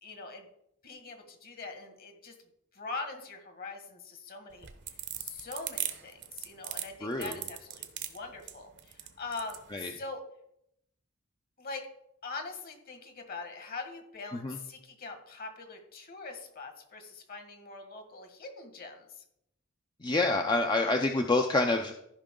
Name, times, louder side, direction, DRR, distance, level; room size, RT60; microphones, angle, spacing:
voice 1, 0.0-0.5 0.8-2.3 2.7-4.7 5.2-10.2 11.6-11.9 12.2-19.2, left 3 dB, 50° left, 5 dB, 1.7 m, -43 dB
sound 1, 4.5-9.6, right 12 dB, 60° right, 0.9 m, -38 dB
voice 2, 7.0-7.3 9.7-9.9 14.4-14.6 20.0-21.9, left 2 dB, 20° left, 4 dB, 0.5 m, -27 dB
14.0 x 5.5 x 3.8 m, 0.76 s
head